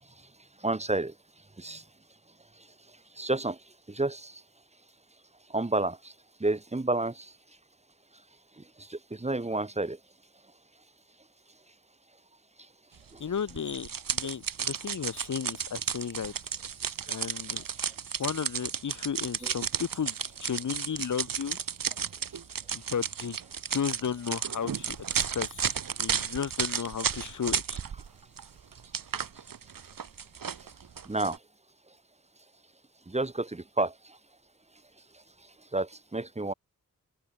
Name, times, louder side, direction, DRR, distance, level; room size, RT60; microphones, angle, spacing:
voice 1, 0.6-1.1 1.6-1.8 3.2-3.6 3.9-4.3 5.5-6.0 6.4-7.2 8.9-10.0 19.4-19.5 31.1-31.4 33.1-33.9 35.7-36.5, right 2 dB, 20° right, 1.7 m, -29 dB
voice 2, 13.2-16.3 17.1-17.6 18.2-21.6 22.7-23.4 23.7-27.8, left 7 dB, 60° left, 1.1 m, -34 dB
sound 1, 13.5-28.1 28.4-31.4, right 7 dB, 75° right, 2.1 m, -33 dB
open air
wide cardioid pair, 125°, 34 cm